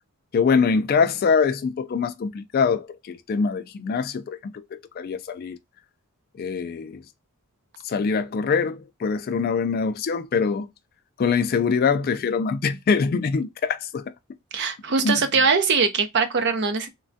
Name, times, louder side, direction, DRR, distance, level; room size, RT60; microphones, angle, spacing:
voice 1, 0.3-5.6 6.4-7.0 7.8-10.7 11.2-14.1 15.0-15.2, left 5 dB, 45° left, 0.3 m, -24 dB
voice 2, 14.5-16.9, right 5 dB, 50° right, 0.6 m, -22 dB
3.2 x 2.2 x 2.6 m
head